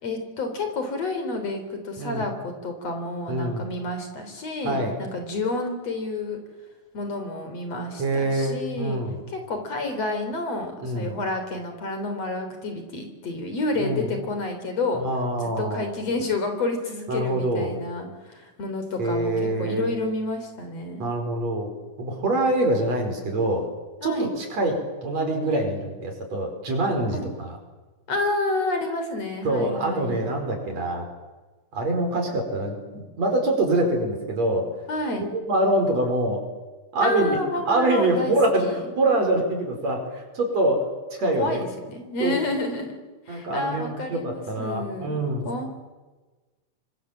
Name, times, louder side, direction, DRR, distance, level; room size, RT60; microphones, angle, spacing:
voice 1, 0.0-6.4 6.9-9.0 9.3-15.0 15.4-21.1 24.0-24.3 27.1-27.3 28.1-30.3 34.9-35.3 37.0-38.8 41.4-43.0 43.3-45.2 45.4-45.7, left 2 dB, 55° left, 6 dB, 4.6 m, -29 dB
voice 2, 3.3-3.7 4.6-5.0 8.0-9.2 10.8-11.1 13.8-14.1 14.9-15.9 17.1-17.8 19.0-19.9 21.0-21.7 22.0-23.7 24.0-27.6 29.4-31.1 31.7-34.7 35.3-36.4 36.9-37.4 37.7-40.9 41.2-41.6 42.2-42.3 43.3-45.5, right 1 dB, 60° right, 3 dB, 6.2 m, -25 dB
26.0 x 24.5 x 7.5 m, 1.2 s
omnidirectional pair, 3.5 m